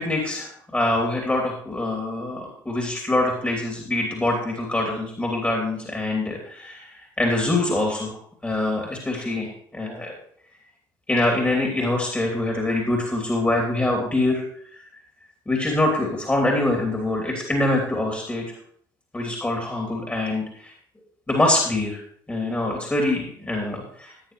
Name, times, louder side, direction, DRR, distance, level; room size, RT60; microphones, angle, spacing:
voice 1, 0.0-8.2 8.4-10.1 11.1-14.4 14.7-14.8 15.5-18.4 19.1-20.7 21.3-22.0 22.3-24.1, left 2 dB, 15° left, 0 dB, 2.9 m, -24 dB
15.5 x 9.7 x 3.2 m, 0.62 s
figure-of-eight pair, 55°, 12 cm